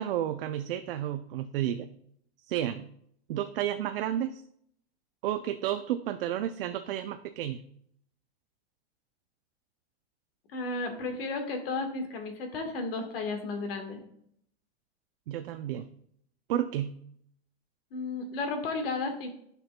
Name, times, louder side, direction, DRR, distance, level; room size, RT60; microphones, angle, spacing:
voice 1, 0.0-1.9 2.5-2.9 3.3-4.4 5.2-7.6 15.3-15.9 16.5-16.9, right 11 dB, 55° right, 9 dB, 0.5 m, -31 dB
voice 2, 10.5-14.0 17.9-19.3, left 3 dB, 60° left, 5 dB, 1.5 m, -33 dB
10.5 x 5.9 x 2.2 m, 0.69 s
supercardioid pair, 165°, 33 cm